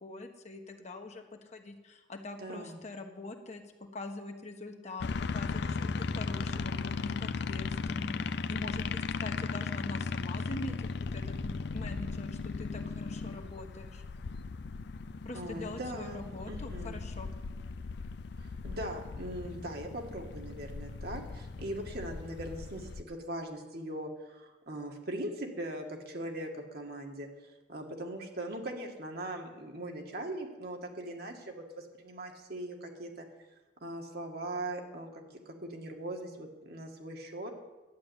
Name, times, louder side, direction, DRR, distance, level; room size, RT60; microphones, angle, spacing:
voice 1, 0.0-14.0 15.2-17.3, left 2 dB, 40° left, 4 dB, 1.2 m, -44 dB
voice 2, 2.4-2.8 15.3-17.0 18.4-27.3 27.7-33.3 33.8-37.5, right 1 dB, 60° right, 2 dB, 1.9 m, -40 dB
sound 1, 5.0-23.0, left 4 dB, 65° left, 0.5 m, -37 dB
11.5 x 9.6 x 8.1 m, 1.2 s
head